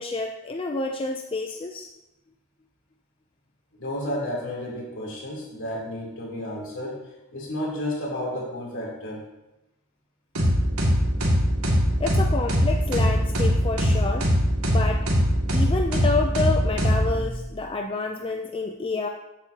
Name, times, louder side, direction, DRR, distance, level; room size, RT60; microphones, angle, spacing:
voice 1, 0.0-1.9 12.0-14.3 14.7-15.1 15.5-19.1, left 3 dB, 25° left, 3 dB, 0.5 m, -28 dB
voice 2, 3.7-9.2, left 1 dB, 60° left, -3 dB, 3.4 m, -32 dB
sound 1, 10.4-17.5, equal, 70° right, 2.3 m, -22 dB
13.5 x 8.2 x 2.9 m, 0.94 s
head